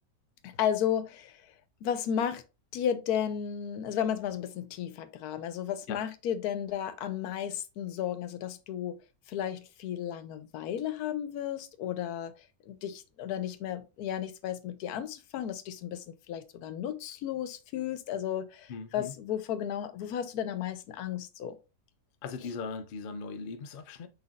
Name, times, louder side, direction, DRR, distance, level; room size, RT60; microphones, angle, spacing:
voice 1, 0.4-1.4 1.8-2.4 2.7-9.0 9.3-12.3 12.7-21.6, left 9 dB, 90° left, 1.1 m, -33 dB
voice 2, 18.7-19.1 22.2-24.1, left 5 dB, 70° left, 0.5 m, -39 dB
5.7 x 3.3 x 2.4 m
omnidirectional pair, 1.6 m